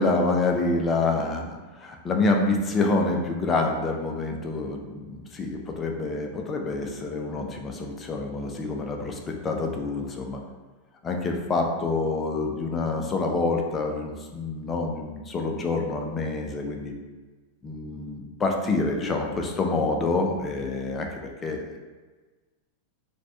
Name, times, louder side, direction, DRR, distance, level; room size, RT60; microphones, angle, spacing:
voice 1, 0.0-10.4 11.0-16.9 17.6-21.8, left 3 dB, 20° left, 2 dB, 0.5 m, -27 dB
4.8 x 2.3 x 3.4 m, 1.3 s
figure-of-eight pair, 90°, 0 cm